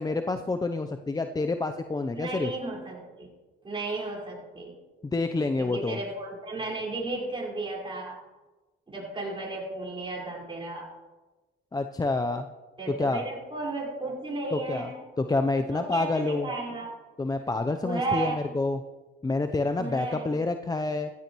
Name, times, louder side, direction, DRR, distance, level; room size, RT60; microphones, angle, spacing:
voice 1, 0.0-2.5 5.1-6.0 11.7-12.5 12.9-13.2 14.5-14.9 15.2-16.5 17.2-18.8 19.2-21.1, left 3 dB, 20° left, 7 dB, 0.6 m, -28 dB
voice 2, 2.1-3.3 3.6-4.8 5.6-8.2 8.9-10.9 12.8-15.1 15.7-16.9 17.8-18.5 19.8-20.4, right 2 dB, 25° right, -3 dB, 4.8 m, -34 dB
15.5 x 14.0 x 3.1 m, 1.2 s
cardioid pair, 90°, 20 cm